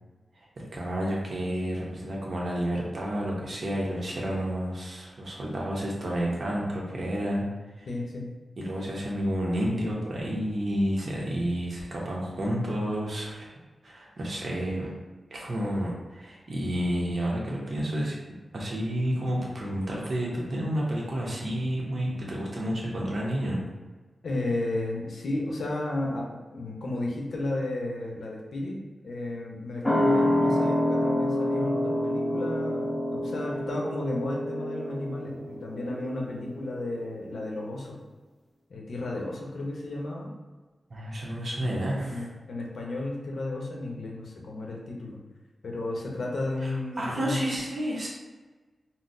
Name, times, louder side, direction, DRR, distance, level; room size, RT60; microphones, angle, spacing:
voice 1, 0.4-7.5 7.8-7.9 8.6-13.5 13.8-14.9 15.3-18.2 18.5-23.6 40.9-42.3 46.6-48.1, equal, 60° right, -3 dB, 0.8 m, -30 dB
voice 2, 7.9-8.3 24.2-26.3 26.5-28.8 29.0-38.0 38.7-40.3 41.6-41.7 42.1-45.2 45.6-47.4, left 2 dB, 80° left, -2 dB, 0.7 m, -33 dB
sound 1, 29.8-36.9 37.2-37.3, left 1 dB, 10° left, 0.5 m, -27 dB
3.8 x 2.1 x 2.6 m, 1.3 s
cardioid pair, 60°, 0 cm